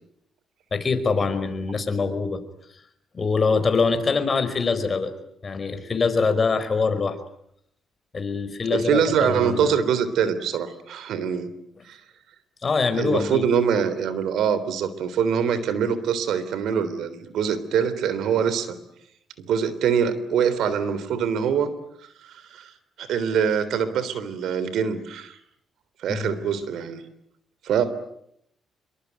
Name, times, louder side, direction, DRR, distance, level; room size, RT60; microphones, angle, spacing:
voice 1, 0.7-2.4 3.1-5.1 5.4-7.2 8.1-9.8 12.6-13.5 26.1-26.3, left 4 dB, 35° left, 10 dB, 4.9 m, -24 dB
voice 2, 8.7-11.5 11.9-12.0 13.0-18.8 19.4-21.7 22.2-22.7 23.0-25.4 26.0-27.0 27.6-27.9, right 7 dB, 75° right, 14 dB, 3.5 m, -24 dB
27.0 x 24.0 x 9.2 m, 0.74 s
cardioid pair, 90°, 0 cm